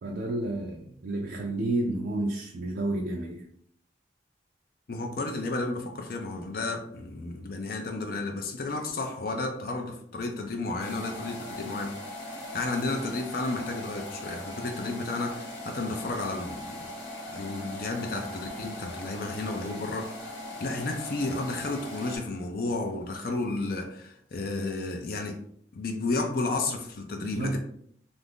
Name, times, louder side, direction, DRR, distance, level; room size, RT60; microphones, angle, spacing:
voice 1, 0.0-3.5 27.2-27.6, right 2 dB, 60° right, 0 dB, 0.4 m, -31 dB
voice 2, 4.9-12.0 12.5-16.9 17.3-20.1 20.6-25.4 25.7-27.6, left 2 dB, 55° left, 3 dB, 0.4 m, -32 dB
sound 1, 10.8-22.2, left 1 dB, 85° left, 0.8 m, -40 dB
2.5 x 2.5 x 3.5 m, 0.66 s
head